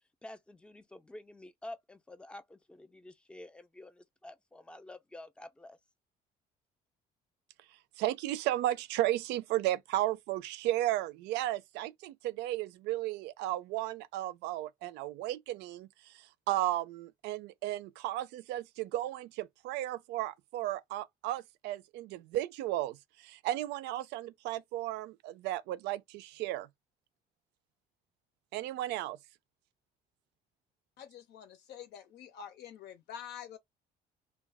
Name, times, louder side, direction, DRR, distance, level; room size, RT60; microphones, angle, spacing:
voice 1, 0.2-5.8, left 1 dB, 5° left, 0.4 m, -49 dB
voice 2, 8.0-15.9 16.5-23.0 23.2-26.7 28.5-29.2, right 15 dB, 85° right, 0.4 m, -34 dB
voice 3, 31.0-33.6, left 9 dB, 75° left, 0.9 m, -47 dB
2.3 x 2.2 x 3.4 m
cardioid pair, 110°, 17 cm